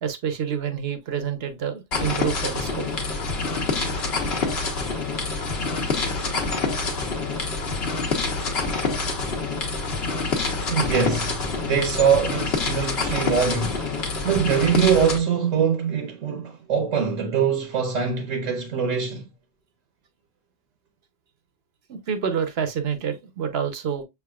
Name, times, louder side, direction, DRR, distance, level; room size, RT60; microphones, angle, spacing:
voice 1, 0.0-2.9 4.8-4.9 8.6-9.0 21.9-24.0, right 7 dB, 60° right, 0.9 m, -28 dB
sound 1, 1.9-15.2, left 3 dB, 55° left, 1.2 m, -26 dB
voice 2, 10.7-13.8 14.2-19.3, right 7 dB, 75° right, 1.2 m, -23 dB
6.4 x 3.5 x 2.2 m
omnidirectional pair, 1.3 m